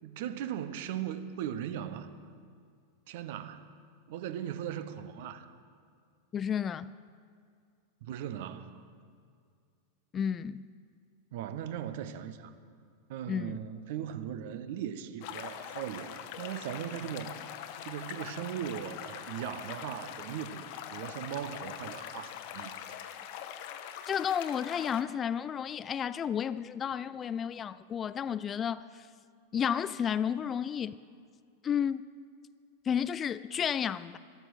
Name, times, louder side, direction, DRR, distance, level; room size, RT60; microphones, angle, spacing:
voice 1, 0.0-2.1 3.1-3.7 4.1-5.5 8.0-8.8 11.3-12.5 13.1-17.4 17.8-22.7, right 10 dB, 50° right, 0.8 m, -38 dB
voice 2, 6.3-6.9 10.1-10.6 13.3-13.6 24.1-29.1 29.5-31.0 31.6-32.0 32.9-34.2, left 8 dB, 25° left, 0.3 m, -32 dB
sound 1, 15.2-25.0, left 10 dB, 45° left, 1.0 m, -43 dB
13.5 x 13.0 x 6.2 m
figure-of-eight pair, 90°, 0 cm